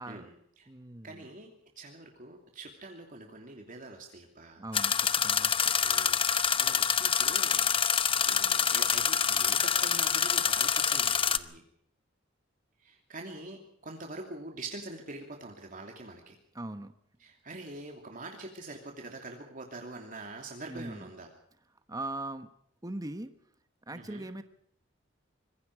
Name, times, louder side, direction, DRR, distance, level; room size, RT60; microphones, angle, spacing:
voice 1, 0.0-0.7 1.0-4.7 5.8-7.7 8.2-11.6 12.8-16.4 17.2-21.3 23.9-24.3, right 2 dB, 45° right, 2 dB, 2.9 m, -45 dB
voice 2, 0.7-1.3 4.6-5.6 16.5-16.9 20.7-21.1 21.9-22.5 22.8-23.3 23.9-24.4, right 2 dB, 20° right, 10 dB, 1.1 m, -40 dB
sound 1, 4.7-11.4, left 7 dB, 30° left, 0.9 m, -26 dB
25.5 x 22.0 x 4.8 m, 0.72 s
head